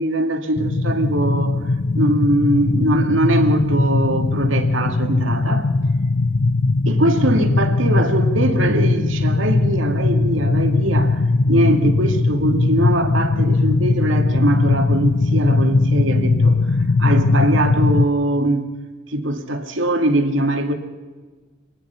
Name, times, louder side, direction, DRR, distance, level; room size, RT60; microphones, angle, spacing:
voice 1, 0.0-1.6 1.9-5.7 6.9-11.2 11.5-16.6 17.0-18.7 19.1-20.7, right 1 dB, 75° right, 6 dB, 2.2 m, -21 dB
sound 1, 0.6-18.1, left 3 dB, 65° left, 0.8 m, -19 dB
24.5 x 19.0 x 5.8 m, 1.4 s
head